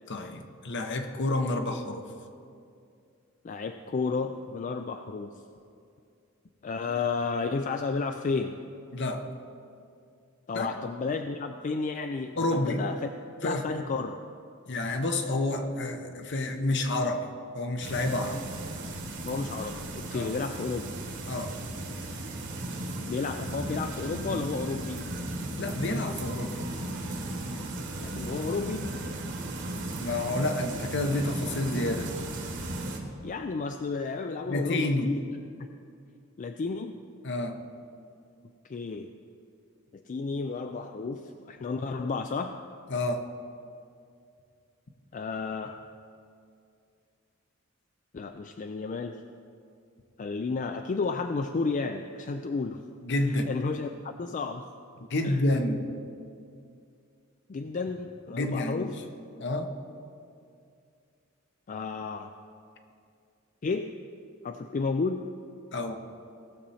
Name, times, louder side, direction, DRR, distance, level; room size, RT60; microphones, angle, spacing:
voice 1, 0.1-2.0 8.9-9.3 10.5-10.7 12.4-12.8 13.4-13.8 14.7-17.3 17.5-18.4 20.1-20.3 21.3-21.5 25.6-26.5 30.0-32.2 34.5-35.1 37.2-37.6 42.9-43.3 53.0-53.5 55.1-55.9 58.3-58.9 59.4-59.7 65.7-65.9, left 1 dB, 60° left, 6 dB, 0.9 m, -29 dB
voice 2, 3.4-5.3 6.6-8.6 10.5-13.1 13.4-14.2 19.2-21.0 23.1-25.1 28.0-28.9 33.2-35.2 35.6-35.7 36.4-37.0 38.6-39.1 39.9-42.6 45.1-45.8 48.1-49.2 50.2-52.9 53.5-53.9 54.2-54.6 55.2-55.4 57.5-59.0 61.7-62.3 63.6-64.0 64.4-65.2, left 4 dB, 40° left, 7 dB, 0.4 m, -32 dB
sound 1, 17.8-33.0, right 1 dB, 60° right, 1.5 m, -36 dB
18.0 x 6.9 x 4.2 m, 2.4 s
head